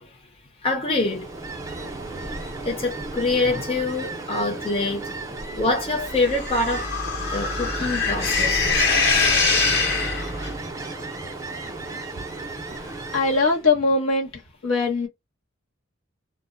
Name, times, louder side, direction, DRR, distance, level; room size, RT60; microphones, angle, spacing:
voice 1, 0.6-1.3 2.7-5.1 5.5-6.9 7.3-8.6, left 2 dB, 30° left, 0.6 m, -25 dB
Ocean, 0.8-13.6, right 2 dB, 15° right, 0.5 m, -34 dB
sound 1, 6.2-10.5, left 4 dB, 55° left, 1.0 m, -23 dB
voice 2, 13.1-14.3 14.6-15.1, left 3 dB, 80° left, 1.1 m, -21 dB
2.1 x 2.0 x 3.7 m
head